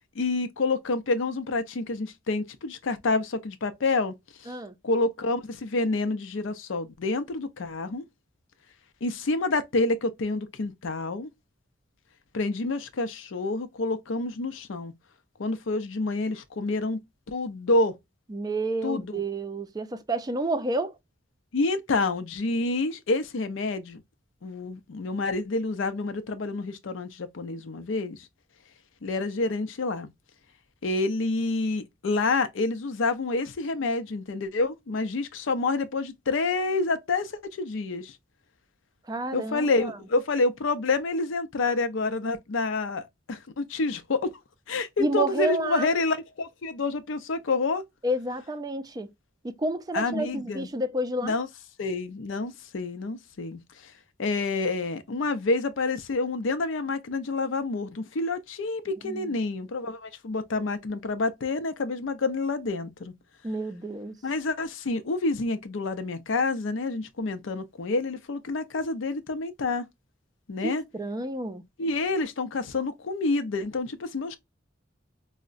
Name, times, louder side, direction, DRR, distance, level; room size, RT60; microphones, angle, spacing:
voice 1, 0.2-4.1 4.4-4.5 4.8-8.0 9.0-11.3 12.3-14.9 15.4-17.0 17.3-18.0 18.8-19.0 21.5-24.0 24.4-28.2 29.0-30.1 30.8-38.2 39.3-44.3 44.7-47.8 49.9-50.7 51.2-51.5 51.8-53.9 54.2-63.1 64.2-69.9 70.5-70.8 71.8-74.4, left 3 dB, 85° left, 0.5 m, -28 dB
voice 2, 4.5-4.8 18.3-21.0 39.1-40.0 45.0-45.9 48.0-49.1 49.4-51.4 59.0-59.3 63.4-64.2 70.6-71.6, right 1 dB, 20° right, 0.4 m, -30 dB
4.6 x 2.1 x 2.4 m
head